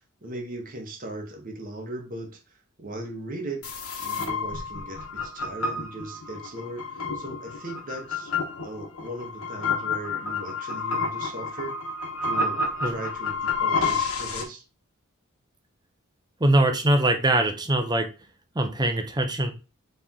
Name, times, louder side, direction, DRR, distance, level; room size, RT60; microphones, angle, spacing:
voice 1, 0.0-2.4 2.8-3.7 4.0-8.3 8.6-11.8 12.2-14.6, right 2 dB, 40° right, 1.1 m, -38 dB
sound 1, 3.6-14.4, left 4 dB, 85° left, 1.2 m, -30 dB
voice 2, 16.4-18.1 18.5-19.5, right 1 dB, 20° right, 0.7 m, -22 dB
4.3 x 3.3 x 3.6 m
head